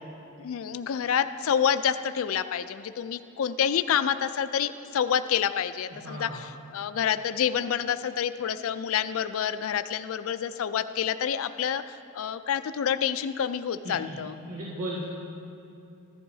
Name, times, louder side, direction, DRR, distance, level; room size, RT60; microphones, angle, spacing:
voice 1, 0.4-14.3, left 8 dB, 65° left, 11 dB, 0.4 m, -28 dB
voice 2, 6.0-6.4 13.8-14.1 14.5-15.0, right 1 dB, 90° right, -8 dB, 1.9 m, -35 dB
15.0 x 11.5 x 2.7 m, 2.7 s
head